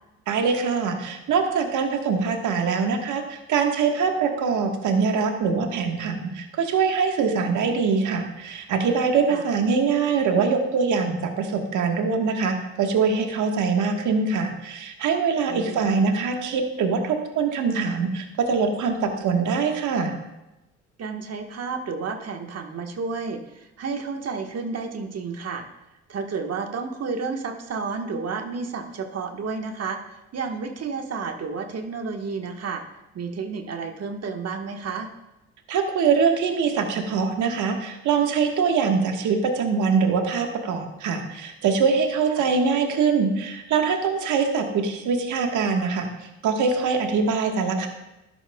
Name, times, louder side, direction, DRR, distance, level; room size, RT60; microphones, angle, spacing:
voice 1, 0.3-20.1 35.7-46.1 46.4-47.9, right 5 dB, 70° right, 4 dB, 1.5 m, -23 dB
voice 2, 15.5-15.9 21.0-25.6 26.1-32.8 33.1-35.1 42.4-42.5, right 4 dB, 50° right, 4 dB, 1.4 m, -31 dB
14.0 x 10.5 x 2.3 m, 0.97 s
supercardioid pair, 60°, 31 cm